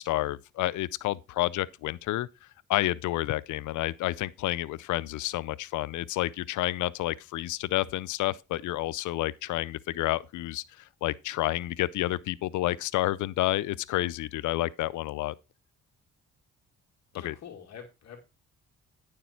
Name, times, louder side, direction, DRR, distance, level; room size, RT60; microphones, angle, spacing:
voice 1, 0.0-2.3 2.7-15.3 17.2-17.4, left 16 dB, 75° left, 0.5 m, -30 dB
voice 2, 17.1-18.2, left 7 dB, 60° left, 2.5 m, -45 dB
10.0 x 6.7 x 4.4 m
cardioid pair, 90°, 30 cm